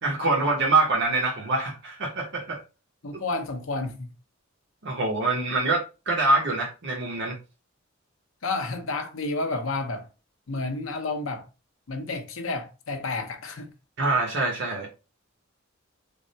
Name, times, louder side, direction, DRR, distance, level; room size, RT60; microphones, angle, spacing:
voice 1, 0.0-2.6 4.8-7.4 14.0-14.9, right 2 dB, 60° right, 0.8 m, -25 dB
voice 2, 3.0-4.1 8.4-10.1 10.5-11.5 11.9-13.7, left 3 dB, 80° left, 0.7 m, -30 dB
3.5 x 2.1 x 3.9 m
head